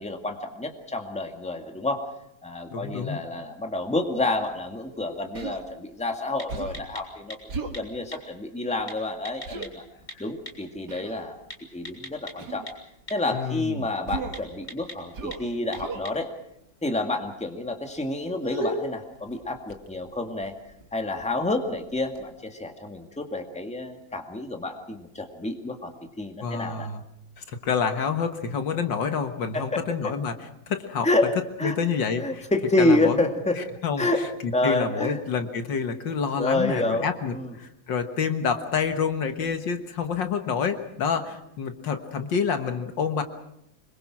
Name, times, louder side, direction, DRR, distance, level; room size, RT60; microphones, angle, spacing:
voice 1, 0.0-2.1 2.4-9.8 10.2-11.4 11.7-12.7 13.1-16.3 16.8-20.5 20.9-25.9 26.2-26.9 29.5-29.8 31.0-31.8 32.2-33.6 34.0-35.2 36.4-37.1 37.3-37.5, left 2 dB, 5° left, 4 dB, 1.9 m, -28 dB
voice 2, 2.7-3.2 10.2-10.3 13.3-13.9 26.4-27.0 27.4-31.1 31.6-32.5 32.8-33.2 33.8-43.2, left 6 dB, 70° left, 7 dB, 2.1 m, -28 dB
sound 1, 4.0-22.3, equal, 20° left, 3.4 m, -43 dB
Human voice, 5.3-5.6 6.5-6.9 7.5-7.8 9.5-9.7 10.9-11.2 12.4-12.7 14.1-14.5 15.1-15.5 15.8-16.1, right 4 dB, 60° right, 2.2 m, -35 dB
25.5 x 22.5 x 6.1 m, 0.78 s
omnidirectional pair, 2.1 m